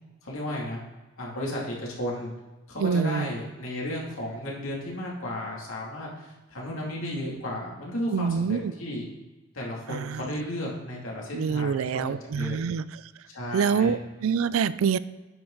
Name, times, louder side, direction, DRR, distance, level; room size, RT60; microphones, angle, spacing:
voice 1, 0.2-0.8 1.2-2.3 2.7-9.1 9.5-12.7 13.3-14.0, left 1 dB, 85° left, -3 dB, 2.4 m, -34 dB
voice 2, 2.8-3.3 8.1-8.7 9.9-10.2 11.3-12.9 13.5-15.0, right 6 dB, 80° right, 16 dB, 0.3 m, -26 dB
8.9 x 6.3 x 3.8 m, 1.2 s
head